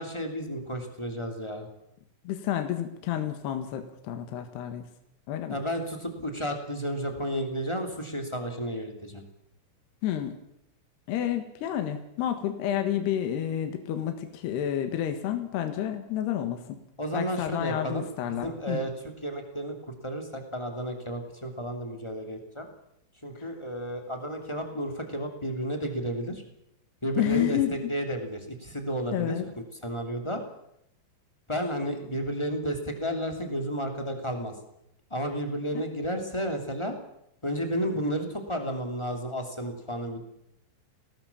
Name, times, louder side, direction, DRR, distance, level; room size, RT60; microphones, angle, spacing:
voice 1, 0.0-1.7 5.5-9.2 17.0-19.7 20.0-22.7 23.2-26.4 27.0-29.4 29.8-30.4 31.5-34.5 35.1-36.9 37.4-40.2, equal, 10° left, 4 dB, 1.4 m, -32 dB
voice 2, 2.3-4.9 5.3-5.6 10.0-10.4 11.1-16.8 17.1-18.8 23.4-23.5 27.2-27.9 29.1-29.5, left 11 dB, 65° left, 6 dB, 3.4 m, -30 dB
21.5 x 18.5 x 7.1 m, 0.78 s
omnidirectional pair, 5.5 m